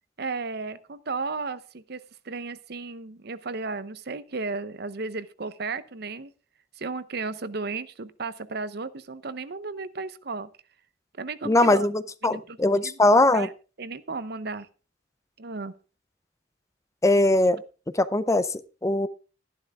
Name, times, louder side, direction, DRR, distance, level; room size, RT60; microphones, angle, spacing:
voice 1, 0.2-6.3 6.8-10.5 11.2-11.9 12.2-13.5 13.8-14.7 15.4-15.7, right 4 dB, 55° right, 14 dB, 0.8 m, -34 dB
voice 2, 11.4-13.5 17.0-17.6 17.9-19.1, left 2 dB, 15° left, 15 dB, 0.5 m, -21 dB
12.5 x 11.0 x 3.6 m, 0.34 s
head